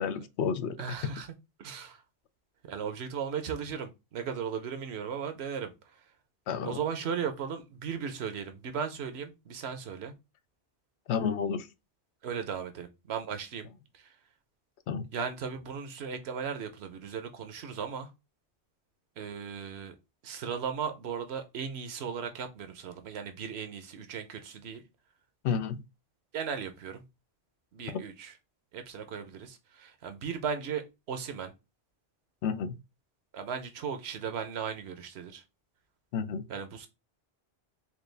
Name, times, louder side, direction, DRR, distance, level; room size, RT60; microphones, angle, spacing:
voice 1, 0.0-1.1 6.5-6.8 11.1-11.7 14.9-15.1 25.4-25.8 27.9-28.0 32.4-32.8 36.1-36.4, left 6 dB, 90° left, 0.9 m, -31 dB
voice 2, 0.8-1.3 1.6-2.0 2.7-6.0 6.6-10.1 12.2-13.7 13.9-14.1 15.1-18.1 19.2-20.0 20.2-24.8 26.3-27.0 27.7-28.3 28.7-31.5 33.3-35.4 36.5-36.9, right 7 dB, 80° right, 0.9 m, -36 dB
4.5 x 2.3 x 3.3 m
omnidirectional pair, 1.1 m